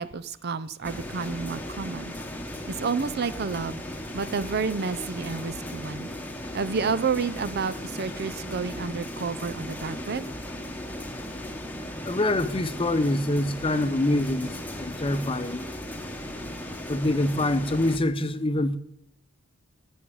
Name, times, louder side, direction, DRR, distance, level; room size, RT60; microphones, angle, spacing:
voice 1, 0.0-2.1 2.7-3.8 4.1-6.1 6.5-10.3, right 5 dB, 50° right, 0.5 m, -30 dB
sound 1, 0.8-18.0, left 1 dB, 10° left, 1.0 m, -37 dB
voice 2, 12.0-15.7 16.9-18.8, left 1 dB, 25° left, 0.7 m, -25 dB
13.5 x 5.5 x 8.6 m
head